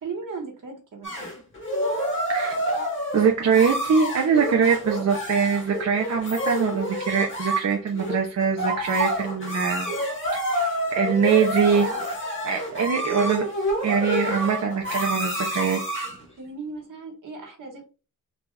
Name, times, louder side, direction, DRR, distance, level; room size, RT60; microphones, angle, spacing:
voice 1, 0.0-1.3 16.4-17.9, right 4 dB, 75° right, 1 dB, 1.3 m, -37 dB
sound 1, 1.0-16.2, equal, 40° left, 1.1 m, -28 dB
voice 2, 3.1-9.9 10.5-10.6 10.9-11.9 12.4-13.4 13.8-16.1, right 6 dB, 55° right, 1 dB, 0.6 m, -23 dB
3.9 x 2.3 x 3.2 m, 0.34 s
wide cardioid pair, 175°, 32 cm